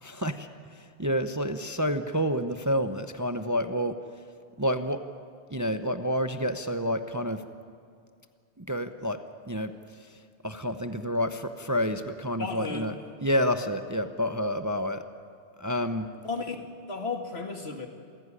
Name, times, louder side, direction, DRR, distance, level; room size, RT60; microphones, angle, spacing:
voice 1, 0.0-4.0 4.6-5.0 5.5-7.4 8.6-9.2 9.5-9.7 10.0-10.1 10.4-15.0 15.6-16.1, equal, 20° right, 8 dB, 0.8 m, -29 dB
voice 2, 12.4-12.9 16.2-16.6 16.9-17.9, left 4 dB, 65° left, 4 dB, 2.3 m, -33 dB
27.5 x 16.0 x 9.9 m, 2.2 s
omnidirectional pair, 1.2 m